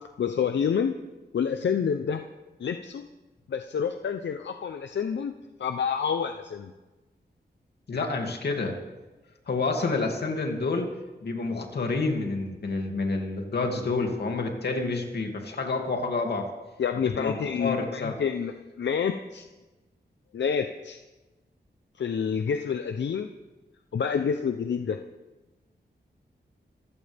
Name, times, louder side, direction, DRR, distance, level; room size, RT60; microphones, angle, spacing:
voice 1, 0.2-0.9 1.3-2.2 2.6-3.0 3.5-5.3 5.6-6.7 16.8-19.4 20.3-21.0 22.0-23.3 23.9-25.0, left 7 dB, 90° left, 7 dB, 0.8 m, -28 dB
voice 2, 7.9-8.8 9.5-10.9 11.2-16.5 17.2-18.2, left 3 dB, 65° left, 2 dB, 2.6 m, -28 dB
26.0 x 15.5 x 3.5 m, 1.2 s
wide cardioid pair, 175°, 18 cm